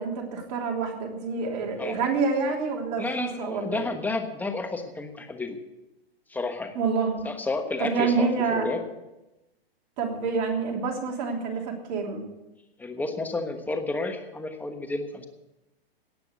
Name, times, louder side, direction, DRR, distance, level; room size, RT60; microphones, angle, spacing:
voice 1, 0.0-3.8 6.7-7.3 7.8-8.7 10.0-12.2, right 5 dB, 45° right, 1 dB, 3.2 m, -27 dB
voice 2, 3.0-5.6 6.3-6.8 7.2-8.8 12.8-15.2, left 3 dB, 5° left, 6 dB, 1.2 m, -31 dB
17.5 x 5.9 x 8.0 m, 0.98 s
hypercardioid pair, 130°, 31 cm